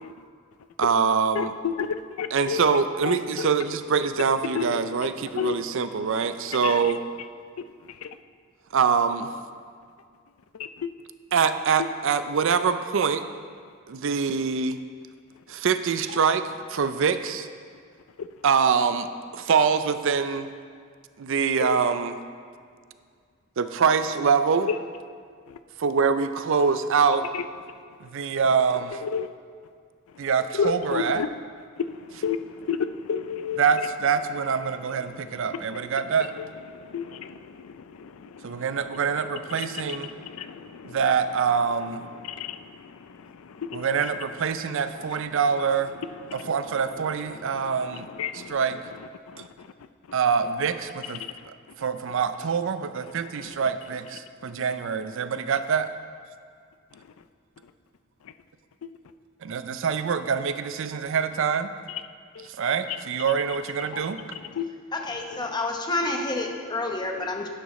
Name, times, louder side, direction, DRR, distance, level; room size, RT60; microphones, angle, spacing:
voice 1, 0.8-1.5 2.3-7.0 8.7-9.3 11.3-13.2 13.9-14.8 15.5-17.5 18.4-19.1 19.3-20.5 21.2-22.2 23.6-24.7 25.8-27.3 28.0-29.0 30.2-31.2 33.6-36.3 38.4-40.1 40.8-42.0 43.7-45.9 46.3-48.1 48.3-48.8 49.4-49.5 50.1-55.9 59.4-61.7 62.5-64.2, right 6 dB, 65° right, 0.5 m, -25 dB
voice 2, 1.4-2.6 3.0-3.5 4.5-5.1 5.4-5.6 6.6-6.8 8.0-8.1 10.6-10.9 18.2-18.3 21.6-21.8 24.6-24.8 25.5-25.6 27.3-27.4 29.0-29.3 30.5-31.3 31.8-33.6 35.5-35.8 36.4-36.5 36.7-38.7 39.6-41.0 42.2-43.9 46.3-46.5 47.3-48.6 49.3-49.7 53.4-53.5 61.9-62.0 62.3-62.4 63.9-64.0 64.5-64.7, left 6 dB, 80° left, 0.4 m, -32 dB
voice 3, 64.9-67.5, left 2 dB, 20° left, 0.9 m, -29 dB
12.0 x 10.0 x 3.1 m
head